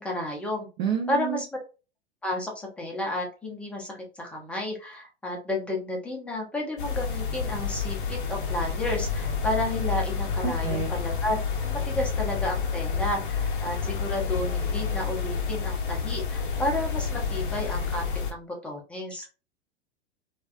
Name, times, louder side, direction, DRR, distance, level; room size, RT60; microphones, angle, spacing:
voice 1, 0.0-0.7 1.1-1.5 2.2-18.0 18.3-19.2, left 1 dB, 5° left, -1 dB, 0.5 m, -32 dB
voice 2, 0.8-1.4 10.4-10.9, right 7 dB, 40° right, 1 dB, 0.6 m, -28 dB
sound 1, 6.8-18.3, left 5 dB, 50° left, 0.6 m, -29 dB
2.3 x 2.2 x 2.4 m, 0.33 s
figure-of-eight pair, 95°, 34 cm